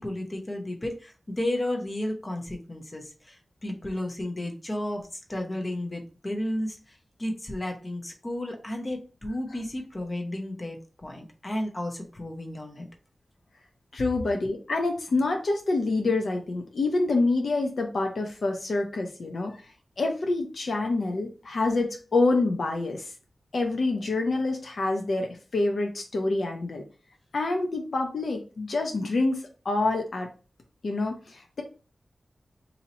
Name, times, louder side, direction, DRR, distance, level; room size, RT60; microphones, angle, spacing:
voice 1, 0.0-12.8, left 1 dB, 35° left, 2 dB, 0.8 m, -33 dB
voice 2, 13.9-19.6 20.0-23.1 23.5-26.8 27.3-30.3 30.8-31.6, left 2 dB, 80° left, 3 dB, 0.7 m, -27 dB
2.8 x 2.8 x 4.1 m, 0.35 s
wide cardioid pair, 75°, 0 cm